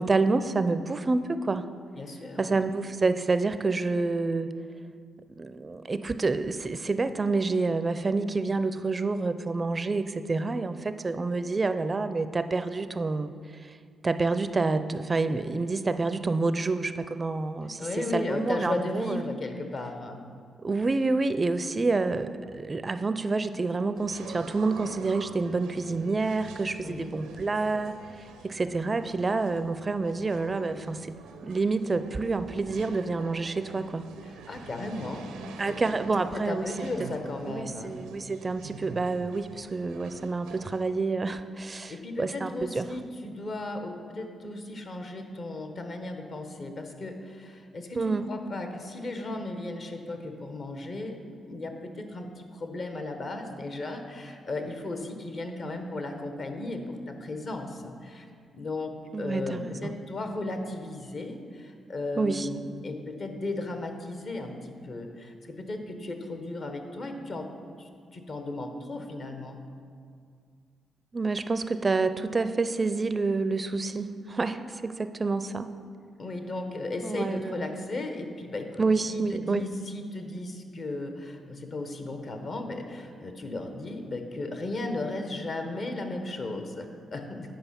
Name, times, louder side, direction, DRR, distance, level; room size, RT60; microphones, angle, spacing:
voice 1, 0.0-1.7 2.4-4.5 5.4-13.3 13.6-13.7 14.0-19.2 20.6-28.0 28.4-31.1 31.4-34.0 35.6-36.7 37.5-42.8 47.9-48.3 59.1-60.0 62.2-62.5 71.1-75.7 77.0-77.7 78.8-79.6, right 3 dB, 35° right, 11 dB, 0.4 m, -28 dB
voice 2, 2.0-2.6 17.8-20.3 26.8-27.1 34.2-35.9 36.3-38.0 41.6-58.3 58.5-67.5 67.8-69.7 76.2-87.5, left 2 dB, 55° left, 5 dB, 1.1 m, -35 dB
sound 1, 24.0-40.8, right 5 dB, 90° right, 0.6 m, -46 dB
8.9 x 5.1 x 5.8 m, 2.2 s
supercardioid pair, 50°, 0 cm